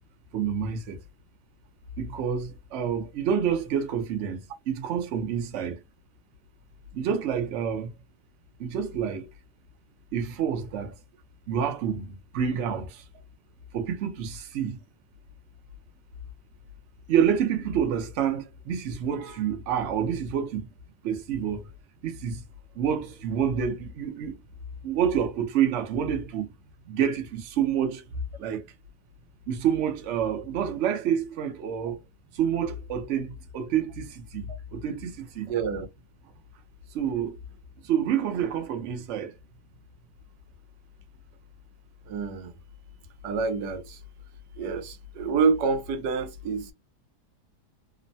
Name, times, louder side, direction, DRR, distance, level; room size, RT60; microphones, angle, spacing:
voice 1, 0.3-1.0 2.0-5.8 6.9-7.9 8.6-9.3 10.1-10.9 11.5-13.0 13.7-14.8 17.1-20.7 21.0-21.6 22.0-22.4 22.7-24.4 24.8-26.5 26.9-28.0 28.4-28.6 29.5-32.0 32.3-35.5 36.9-37.4 37.8-39.3, right 8 dB, 60° right, 0.8 m, -28 dB
voice 2, 35.5-35.9 42.1-42.5 43.2-44.0 44.6-46.7, right 5 dB, 90° right, 1.2 m, -27 dB
3.0 x 2.1 x 2.6 m
omnidirectional pair, 1.8 m